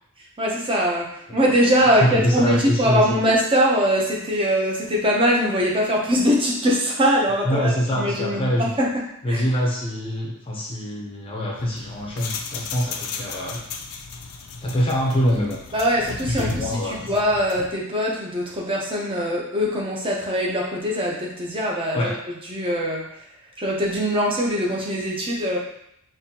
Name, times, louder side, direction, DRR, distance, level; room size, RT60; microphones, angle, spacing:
voice 1, 0.4-8.9 9.3-9.4 15.7-22.1 22.5-23.0 23.6-25.6, equal, 25° right, -3 dB, 0.8 m, -22 dB
voice 2, 1.9-3.0 7.4-8.7 9.2-13.6 14.6-15.6 16.3-17.1 21.9-22.2, equal, 25° left, -3 dB, 0.6 m, -24 dB
sound 1, 11.6-17.7, left 5 dB, 75° left, 0.4 m, -35 dB
5.4 x 2.6 x 2.8 m, 0.77 s
head